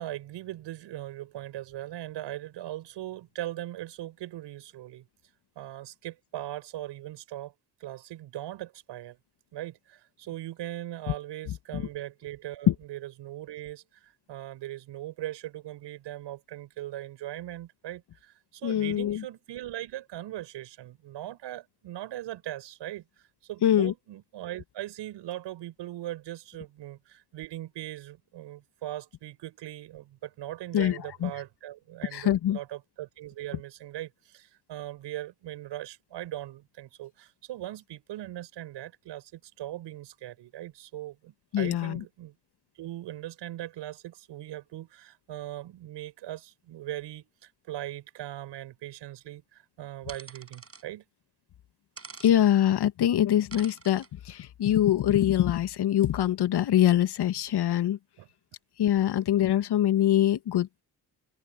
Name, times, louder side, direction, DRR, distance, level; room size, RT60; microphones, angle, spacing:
voice 1, 0.0-5.0 5.6-7.5 7.8-9.2 9.5-23.0 23.5-42.3 42.8-51.0 58.2-58.3, right 14 dB, 70° right, 6.0 m, -40 dB
voice 2, 18.6-19.2 23.6-23.9 30.7-31.3 32.1-32.6 41.5-42.0 52.2-58.0 58.8-60.8, left 11 dB, 60° left, 2.2 m, -24 dB
sound 1, 50.1-50.8 52.0-52.3 53.5-54.1, right 4 dB, 30° right, 7.2 m, -46 dB
open air
hypercardioid pair, 45°, 44 cm